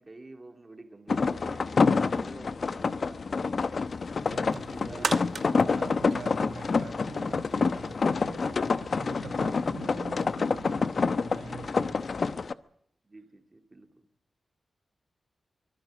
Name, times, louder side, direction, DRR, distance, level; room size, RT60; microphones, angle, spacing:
voice 1, 0.0-3.5 4.7-5.6 12.3-12.5 13.0-14.0, right 2 dB, 25° right, 2.7 m, -48 dB
sound 1, 1.1-12.5, left 4 dB, 50° left, 0.8 m, -27 dB
sound 2, 4.2-6.9 7.4-7.5, right 4 dB, 50° right, 1.0 m, -36 dB
voice 2, 4.2-5.2 5.7-12.0, right 5 dB, 90° right, 4.6 m, -44 dB
24.5 x 17.0 x 7.6 m
wide cardioid pair, 120°, 0 cm